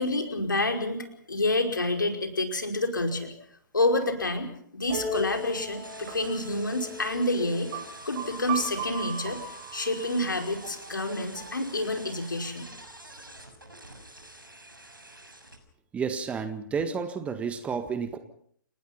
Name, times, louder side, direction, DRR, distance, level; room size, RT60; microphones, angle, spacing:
voice 1, 0.0-3.3 3.7-4.5 4.7-7.7 8.0-12.7, left 2 dB, 70° left, 4 dB, 5.1 m, -28 dB
sound 1, 4.9-12.4, right 2 dB, 35° right, 7.7 m, -38 dB
sound 2, 5.1-15.6, right 1 dB, 80° right, 6.4 m, -48 dB
voice 2, 15.9-18.2, right 6 dB, 10° right, 10 dB, 1.6 m, -31 dB
29.5 x 19.5 x 5.9 m, 0.66 s
figure-of-eight pair, 125°, 11 cm